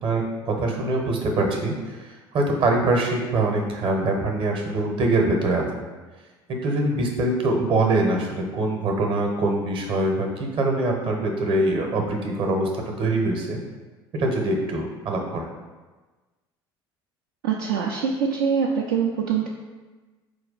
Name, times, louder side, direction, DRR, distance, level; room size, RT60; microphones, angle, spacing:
voice 1, 0.0-5.6 6.5-13.6 14.1-15.5, right 2 dB, 40° right, 2 dB, 0.8 m, -24 dB
voice 2, 17.4-19.5, right 6 dB, 65° right, -2 dB, 0.4 m, -24 dB
4.7 x 2.2 x 3.9 m, 1.3 s
figure-of-eight pair, 65°, 13 cm